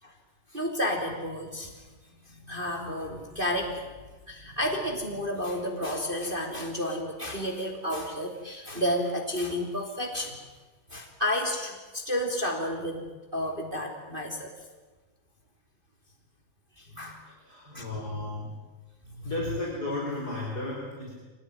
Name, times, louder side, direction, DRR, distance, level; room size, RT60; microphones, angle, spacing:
voice 1, 0.5-1.8 2.2-3.9 4.3-10.4 10.9-13.0 13.3-14.5 16.8-17.2 17.7-17.9 19.2-19.3, left 1 dB, 15° right, 3 dB, 2.3 m, -31 dB
voice 2, 16.9-18.6 19.2-21.2, left 1 dB, 20° left, -1 dB, 5.0 m, -34 dB
25.5 x 19.5 x 9.9 m, 1.3 s
omnidirectional pair, 5.3 m